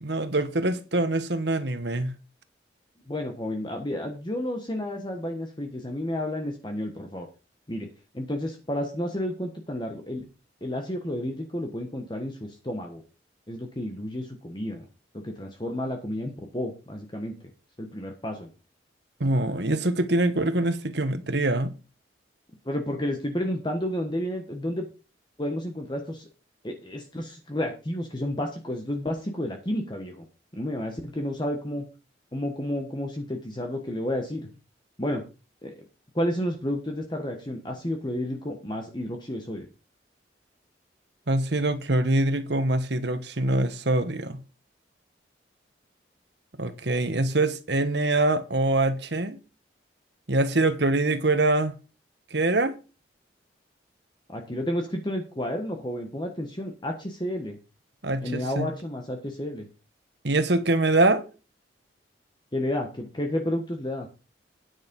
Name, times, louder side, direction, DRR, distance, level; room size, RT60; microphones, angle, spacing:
voice 1, 0.0-2.1 19.2-21.7 41.3-44.4 46.6-49.4 50.3-51.7 52.3-52.8 58.0-58.7 60.2-61.2, right 2 dB, 65° right, 1.3 m, -24 dB
voice 2, 3.1-7.3 7.7-7.9 8.1-10.3 10.6-13.0 13.5-14.9 15.1-17.4 17.8-18.5 22.6-24.9 25.4-26.3 26.6-30.2 30.5-31.9 32.3-34.5 35.0-35.2 35.6-35.7 36.1-39.7 54.3-57.6 58.2-59.7 62.5-64.1, left 1 dB, 25° left, 1.3 m, -31 dB
9.8 x 6.3 x 5.4 m
head